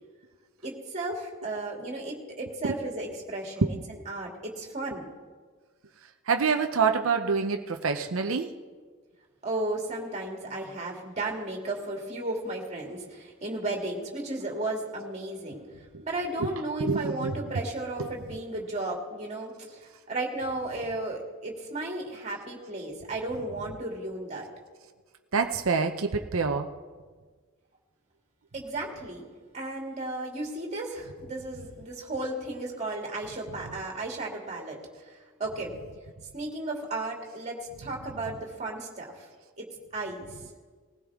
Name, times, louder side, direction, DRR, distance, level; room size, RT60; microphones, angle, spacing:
voice 1, 0.6-5.0 9.4-15.6 16.0-24.5 28.5-29.3 29.5-34.8 35.0-35.7 36.3-39.3 39.6-39.7 39.9-40.3, right 2 dB, 35° right, -1 dB, 2.7 m, -34 dB
voice 2, 6.3-8.5 16.4-16.5 16.8-17.6 18.0-18.1 25.3-26.7, right 5 dB, 70° right, 5 dB, 0.7 m, -26 dB
19.0 x 16.0 x 3.7 m, 1.5 s
head